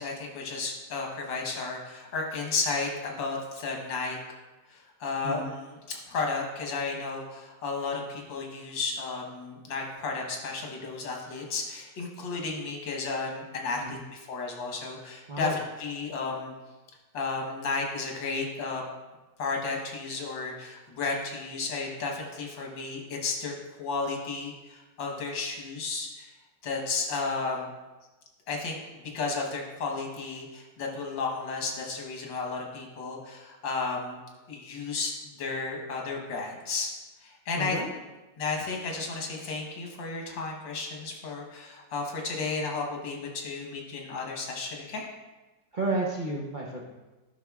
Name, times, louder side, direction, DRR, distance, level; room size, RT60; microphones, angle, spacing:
voice 1, 0.0-4.2 4.7-16.5 17.1-18.8 19.4-26.3 26.6-27.7 28.5-34.2 34.5-35.1 35.4-36.9 37.2-37.8 38.4-45.0, left 4 dB, 80° left, 0 dB, 1.9 m, -33 dB
voice 2, 37.6-37.9 45.7-46.8, right 2 dB, 70° right, -3 dB, 0.4 m, -31 dB
11.0 x 5.7 x 2.3 m, 1.1 s
omnidirectional pair, 2.0 m